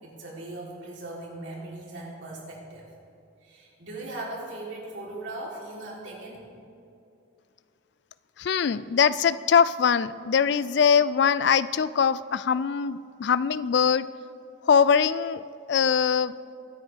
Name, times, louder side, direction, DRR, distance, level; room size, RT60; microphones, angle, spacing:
voice 1, 0.0-2.9 3.4-6.5, right 2 dB, 70° right, -4 dB, 3.6 m, -39 dB
voice 2, 8.4-14.1 14.7-15.4 15.7-16.4, left 7 dB, 55° left, 16 dB, 0.3 m, -22 dB
23.0 x 9.4 x 3.5 m, 2.6 s
head